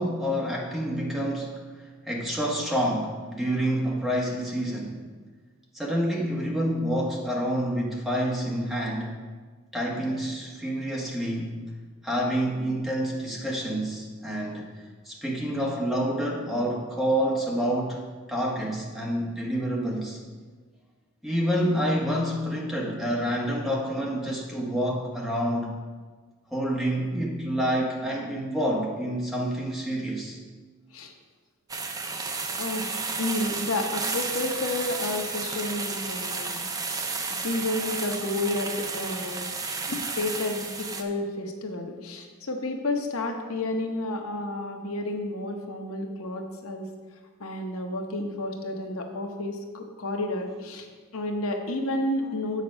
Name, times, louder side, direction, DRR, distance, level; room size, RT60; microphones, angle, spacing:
voice 1, 0.0-1.6 2.1-5.0 5.7-9.1 9.7-11.6 12.0-14.7 15.0-18.0 18.3-20.2 21.2-25.8 26.5-30.4, equal, ahead, -3 dB, 1.1 m, -28 dB
sound 1, 31.7-41.0, right 4 dB, 15° right, 0.5 m, -32 dB
voice 2, 33.2-39.5 39.9-46.9 47.4-50.9 51.1-52.6, left 2 dB, 75° left, 3 dB, 1.0 m, -31 dB
7.7 x 6.6 x 5.2 m, 1.4 s
head